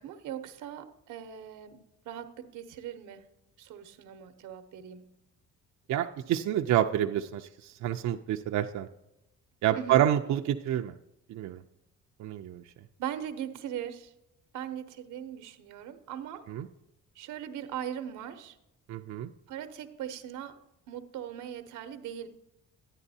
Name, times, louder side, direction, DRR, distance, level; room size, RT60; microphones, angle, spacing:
voice 1, 0.0-1.8 2.0-3.2 3.6-5.1 9.7-10.0 13.0-14.1 14.5-16.5 17.2-18.6 19.5-20.6 20.9-22.3, right 10 dB, 90° right, 9 dB, 0.8 m, -40 dB
voice 2, 5.9-8.9 9.6-10.9 11.3-11.6 12.2-12.6 16.5-16.7 18.9-19.3, right 11 dB, 65° right, 4 dB, 0.5 m, -28 dB
10.5 x 9.9 x 2.7 m, 0.90 s
cardioid pair, 90°, 30 cm